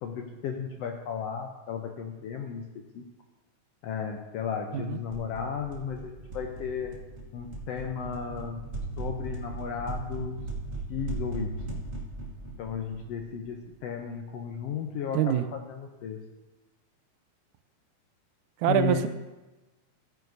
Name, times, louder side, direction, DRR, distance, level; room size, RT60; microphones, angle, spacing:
voice 1, 0.0-3.1 3.8-7.0 7.3-8.6 9.0-10.4 10.9-11.8 12.6-15.4 15.7-16.2 18.7-19.1, left 7 dB, 80° left, 3 dB, 1.5 m, -34 dB
sound 1, 5.1-13.8, right 2 dB, 55° right, 0.8 m, -38 dB
voice 2, 15.1-15.5 18.6-19.1, right 11 dB, 85° right, 10 dB, 2.0 m, -24 dB
15.5 x 9.3 x 2.7 m, 1.1 s
omnidirectional pair, 3.4 m